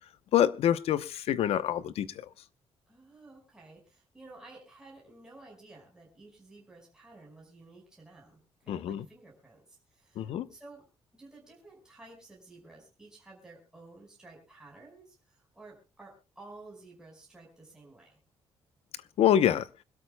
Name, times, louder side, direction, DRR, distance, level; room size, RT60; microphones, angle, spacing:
voice 1, 0.3-2.3 8.7-9.0 10.2-10.5 19.2-19.7, left 10 dB, 80° left, 15 dB, 0.8 m, -26 dB
voice 2, 2.9-10.9 11.1-18.2, right 2 dB, 5° right, -2 dB, 5.1 m, -53 dB
25.5 x 13.0 x 2.2 m, 0.30 s
cardioid pair, 160°, 10 cm